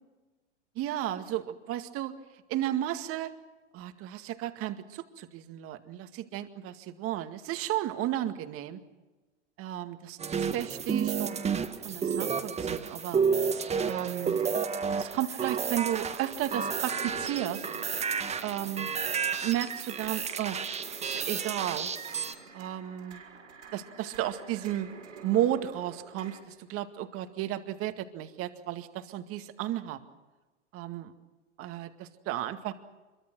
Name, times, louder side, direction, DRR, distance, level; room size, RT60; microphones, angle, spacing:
voice 1, 0.8-2.1 2.5-3.3 3.7-8.8 9.6-13.2 13.8-14.4 14.9-17.7 18.4-18.9 19.4-20.6 21.0-21.9 22.5-23.2 23.7-24.9 25.2-30.0 30.7-31.1 31.6-32.7, right 12 dB, 40° right, 8 dB, 2.1 m, -33 dB
inverscape-threesaw-snare, 10.2-22.3, right 6 dB, 20° right, 1.8 m, -31 dB
sound 1, 13.5-26.4, right 5 dB, 85° right, 6.6 m, -48 dB
25.5 x 23.5 x 6.3 m, 1.2 s
hypercardioid pair, 110°, 36 cm